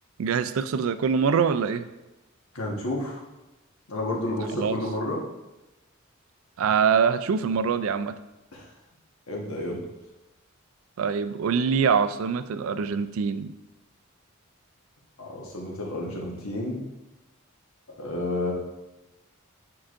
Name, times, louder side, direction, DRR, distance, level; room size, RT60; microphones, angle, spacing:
voice 1, 0.2-1.9 4.5-4.8 6.6-8.1 11.0-13.5, right 6 dB, 70° right, 11 dB, 0.4 m, -24 dB
voice 2, 2.5-3.2 3.9-5.2 8.5-8.6 9.3-9.8 15.2-16.8 18.0-18.5, left 1 dB, 75° left, -2 dB, 1.3 m, -30 dB
8.8 x 4.8 x 2.5 m, 1.0 s
head